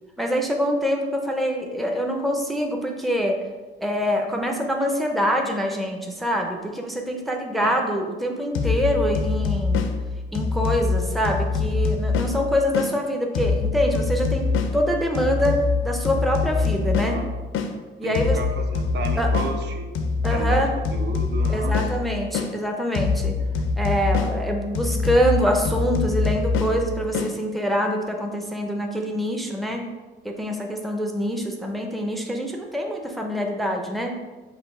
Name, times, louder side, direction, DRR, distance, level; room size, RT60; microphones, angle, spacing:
voice 1, 0.2-3.4 3.8-9.9 10.3-17.2 18.0-18.4 19.2-19.3 20.2-20.7 21.5-23.3 23.8-29.9 30.2-34.1, equal, ahead, 2 dB, 0.5 m, -25 dB
sound 1, 8.5-12.9 13.3-17.7 18.1-22.5 22.9-27.3, left 4 dB, 75° left, 0.5 m, -25 dB
voice 2, 18.0-19.9 20.3-21.8 29.6-29.7, right 3 dB, 55° right, 4 dB, 0.6 m, -32 dB
4.9 x 2.6 x 3.7 m, 1.3 s
cardioid pair, 105°, 21 cm